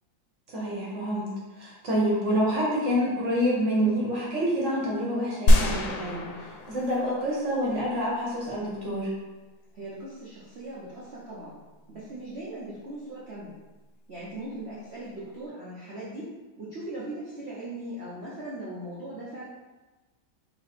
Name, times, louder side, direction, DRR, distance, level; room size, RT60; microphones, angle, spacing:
voice 1, 0.5-1.3 1.6-9.1, equal, 50° right, -6 dB, 1.0 m, -27 dB
sound 1, 5.5-7.7, equal, 90° left, 1.4 m, -23 dB
voice 2, 9.7-11.6 11.9-13.6 14.1-19.5, right 1 dB, 75° right, -7 dB, 0.5 m, -39 dB
3.4 x 3.0 x 4.1 m, 1.2 s
omnidirectional pair, 2.1 m